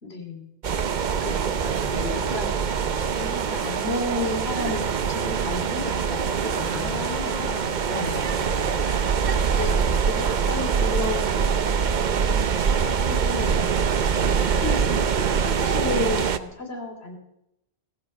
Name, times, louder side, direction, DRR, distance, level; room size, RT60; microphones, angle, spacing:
voice 1, 0.0-0.5 1.2-1.5 1.9-2.6 3.0-4.8 5.1-7.3 8.8-9.0 9.5-11.5 12.1-13.9 14.2-17.1, left 2 dB, 70° left, 2 dB, 3.7 m, -32 dB
sound 1, 0.6-16.4, right 6 dB, 50° right, 0.8 m, -24 dB
voice 2, 1.6-2.8 6.5-9.0, left 2 dB, 40° left, 1 dB, 3.2 m, -36 dB
16.5 x 14.5 x 5.7 m, 0.82 s
omnidirectional pair, 1.1 m